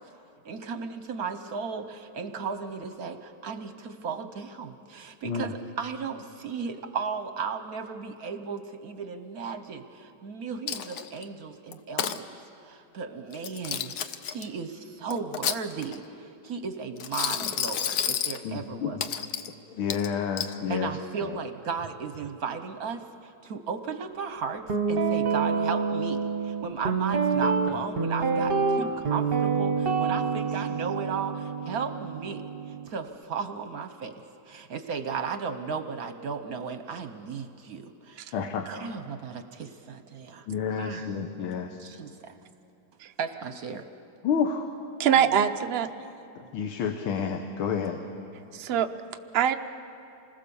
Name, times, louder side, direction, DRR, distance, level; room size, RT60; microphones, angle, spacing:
voice 1, 0.4-19.0 20.7-32.4 32.9-34.1 34.5-38.4 38.7-40.5 40.8-41.1 41.8-42.3 43.2-43.8, right 5 dB, 60° right, 9 dB, 1.1 m, -35 dB
voice 2, 5.2-5.5 18.4-19.0 19.7-21.4 30.1-30.3 38.3-38.7 40.5-41.8 44.2-44.7 46.4-48.0, left 6 dB, 85° left, 5 dB, 1.9 m, -30 dB
Coin (dropping), 10.7-11.2 11.7-12.2 13.3-14.4 15.1-16.0 17.0-18.4 19.0-19.5 19.9-20.5, left 8 dB, 65° left, 1.1 m, -30 dB
Guitar, 24.7-32.9, right 5 dB, 40° right, 1.0 m, -27 dB
voice 3, 45.0-45.9 48.5-48.9 49.3-49.5, right 9 dB, 90° right, 6 dB, 0.5 m, -23 dB
27.0 x 20.5 x 7.0 m, 2.7 s
omnidirectional pair, 2.2 m